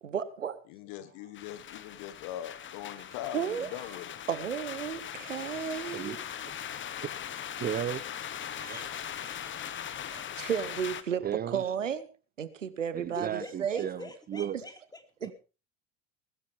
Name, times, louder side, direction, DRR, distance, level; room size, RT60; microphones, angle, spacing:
voice 1, 0.0-0.6 3.3-3.9 4.3-6.2 10.1-12.1 12.4-13.9, right 8 dB, 85° right, 1.1 m, -33 dB
voice 2, 0.7-4.1, left 12 dB, 55° left, 1.4 m, -41 dB
sound 1, 1.3-11.0, left 9 dB, 30° left, 1.3 m, -40 dB
voice 3, 7.6-8.0 8.6-8.9 11.2-11.6 12.9-14.6 15.3-15.4, right 10 dB, 25° right, 0.6 m, -35 dB
voice 4, 13.1-15.0, left 2 dB, 10° left, 3.4 m, -46 dB
20.5 x 13.0 x 3.5 m
figure-of-eight pair, 70°, 37 cm